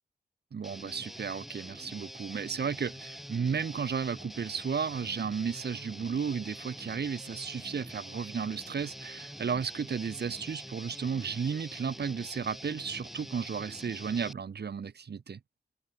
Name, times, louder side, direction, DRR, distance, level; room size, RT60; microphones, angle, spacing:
voice 1, 0.5-15.4, right 6 dB, 80° right, 2.2 m, -34 dB
Guitar, 0.6-14.3, equal, ahead, 4.2 m, -45 dB
wide cardioid pair, 80°, 17 cm